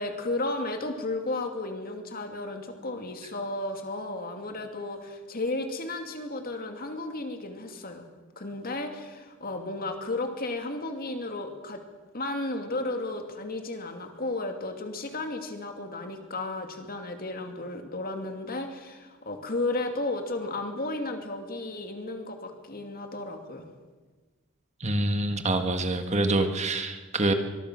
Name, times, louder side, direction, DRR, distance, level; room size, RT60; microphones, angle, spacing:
voice 1, 0.0-8.1 8.4-11.8 12.1-23.7, left 2 dB, 45° left, 5 dB, 2.7 m, -33 dB
voice 2, 24.8-27.3, right 2 dB, 30° right, 6 dB, 1.7 m, -26 dB
24.0 x 21.0 x 6.3 m, 1.3 s
head